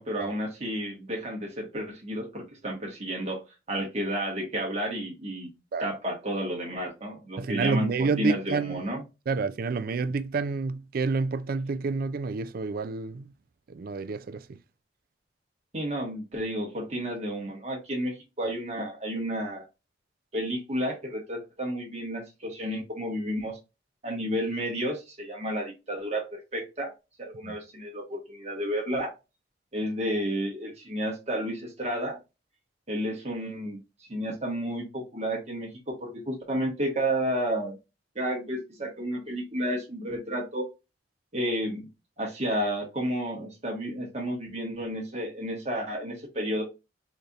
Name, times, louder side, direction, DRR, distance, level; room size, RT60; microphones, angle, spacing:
voice 1, 0.0-3.4 3.7-5.5 5.8-9.0 15.7-19.7 20.3-23.6 24.0-26.9 27.2-29.1 29.7-32.2 32.9-33.8 34.1-37.8 38.1-40.7 41.3-41.9 42.2-46.6, equal, 40° right, 1.4 m, -31 dB
voice 2, 7.4-8.9 9.3-13.3 13.7-14.4 27.4-27.6, right 4 dB, 55° right, 0.4 m, -29 dB
4.1 x 3.3 x 2.4 m
head